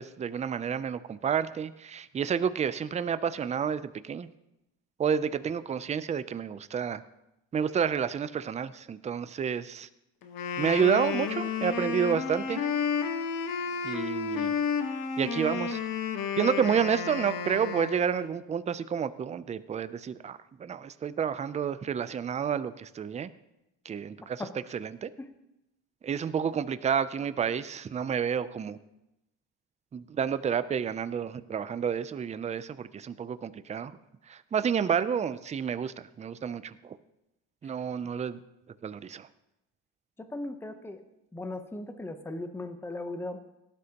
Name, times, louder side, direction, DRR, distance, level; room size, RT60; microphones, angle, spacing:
voice 1, 0.0-4.3 5.0-7.0 7.5-9.9 10.6-12.6 13.8-14.5 15.2-15.8 16.4-23.3 23.9-24.4 24.7-25.1 26.0-28.8 29.9-33.9 34.3-37.0 37.6-38.4 38.8-39.3, right 7 dB, 20° right, 14 dB, 0.4 m, -30 dB
Wind instrument woodwind instrument, 10.2-18.4, left 6 dB, 75° left, 1.3 m, -32 dB
voice 2, 40.3-41.0 41.3-43.4, left 2 dB, 5° left, 8 dB, 0.8 m, -37 dB
18.0 x 11.5 x 2.9 m, 0.90 s
cardioid pair, 125°, 34 cm